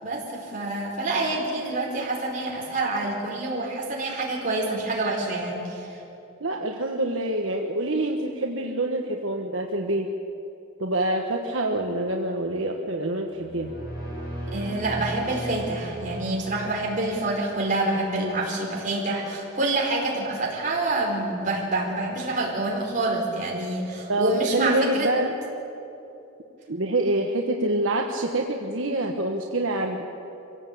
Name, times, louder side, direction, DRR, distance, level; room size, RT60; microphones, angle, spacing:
voice 1, 0.0-6.0 14.5-25.1, right 2 dB, 35° right, -2 dB, 4.7 m, -27 dB
voice 2, 6.4-10.1 10.8-13.7 24.1-25.3 26.7-30.1, right 1 dB, 65° right, 2 dB, 1.3 m, -26 dB
sound 1, 13.3-17.7, right 1 dB, 45° left, 6.5 m, -36 dB
24.5 x 16.5 x 8.6 m, 2.9 s
head